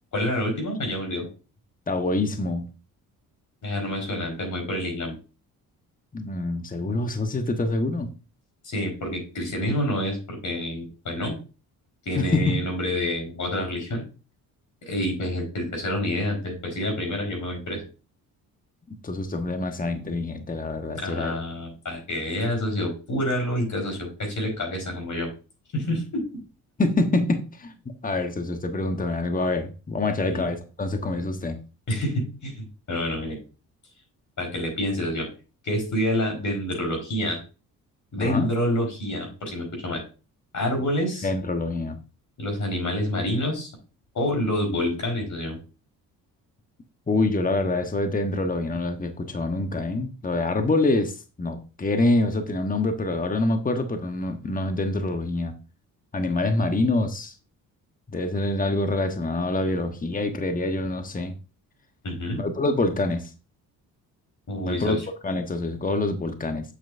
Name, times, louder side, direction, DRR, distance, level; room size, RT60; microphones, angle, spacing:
voice 1, 0.1-1.3 3.6-5.2 8.6-11.4 12.0-14.0 14.8-17.8 20.9-25.3 25.7-26.2 30.2-30.5 31.9-33.4 34.4-35.3 35.6-37.4 38.1-40.0 40.5-41.3 42.4-43.7 44.1-45.6 62.0-62.4 64.5-65.1, left 1 dB, 50° left, 2 dB, 4.6 m, -28 dB
voice 2, 1.9-2.7 6.1-8.1 12.1-12.6 19.0-21.3 26.8-27.7 28.0-31.6 38.2-38.5 41.2-42.0 47.1-55.5 56.1-57.3 58.1-61.3 62.4-63.3 64.6-65.0 65.2-66.6, left 2 dB, 20° left, 7 dB, 1.2 m, -26 dB
8.0 x 7.5 x 2.6 m, 0.33 s
supercardioid pair, 70°, 38 cm